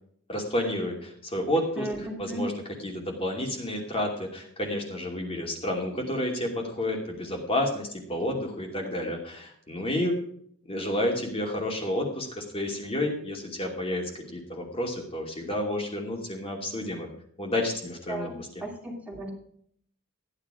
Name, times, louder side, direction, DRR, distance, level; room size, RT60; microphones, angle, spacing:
voice 1, 0.3-1.9 2.2-10.2 10.7-17.1 17.4-18.5, left 1 dB, 25° left, 0 dB, 2.7 m, -30 dB
voice 2, 1.8-2.4 18.1-19.3, right 1 dB, 5° right, 0 dB, 2.9 m, -36 dB
14.5 x 10.0 x 4.9 m, 0.65 s
head